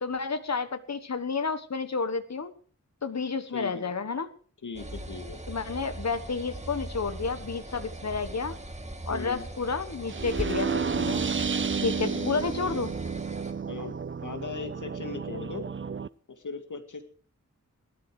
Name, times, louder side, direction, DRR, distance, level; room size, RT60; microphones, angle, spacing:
voice 1, 0.0-2.5 3.0-4.3 5.5-8.6 9.1-11.2 11.8-12.9, left 4 dB, 60° left, 11 dB, 1.4 m, -31 dB
voice 2, 3.5-3.8 4.6-5.4 9.1-9.5 12.1-12.9 13.7-13.9 14.2-15.7 16.3-17.0, left 4 dB, 85° left, 7 dB, 2.2 m, -38 dB
sound 1, 4.7-13.5, right 1 dB, 20° right, 2.4 m, -39 dB
sound 2, 10.1-16.1, right 5 dB, 40° right, 0.6 m, -31 dB
18.5 x 13.0 x 4.9 m, 0.43 s
wide cardioid pair, 65°, 30 cm